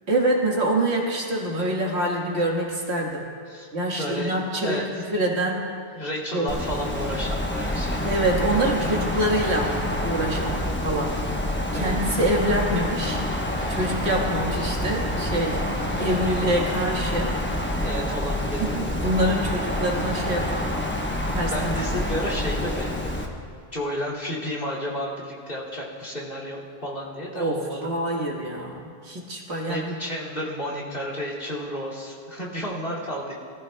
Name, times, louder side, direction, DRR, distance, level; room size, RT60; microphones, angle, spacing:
voice 1, 0.1-3.3 3.7-4.8 5.1-5.7 6.3-6.5 8.0-9.7 10.0-11.2 11.7-13.2 13.7-15.6 16.0-17.3 18.6-20.9 21.3-21.5 27.4-29.8, right 1 dB, 80° right, -1 dB, 1.9 m, -25 dB
voice 2, 4.0-5.0 5.9-8.2 8.6-8.9 11.7-12.2 17.8-18.6 21.5-23.2 23.7-27.8 29.7-33.3, equal, 55° left, -3 dB, 2.7 m, -32 dB
Wind, 6.5-23.3, left 1 dB, 10° left, 0.9 m, -27 dB
20.0 x 14.5 x 2.3 m, 2.2 s
omnidirectional pair, 1.1 m